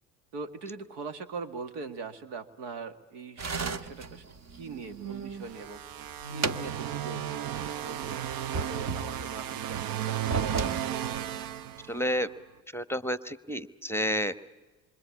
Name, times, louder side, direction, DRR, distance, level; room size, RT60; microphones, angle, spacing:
voice 1, 0.3-5.8 6.3-7.2 7.6-8.3 8.5-10.7, right 4 dB, 75° right, 9 dB, 2.0 m, -41 dB
sound 1, 3.4-5.5 5.9-7.3 7.6-7.7 8.3-9.5 10.1-10.8, right 4 dB, 40° right, 1.4 m, -35 dB
sound 2, 5.4-12.3, right 10 dB, 55° right, 0.9 m, -34 dB
voice 2, 11.9-12.3 12.7-14.3, equal, 5° left, 13 dB, 1.0 m, -30 dB
27.0 x 24.5 x 8.6 m, 1.3 s
hypercardioid pair, 70°, 41 cm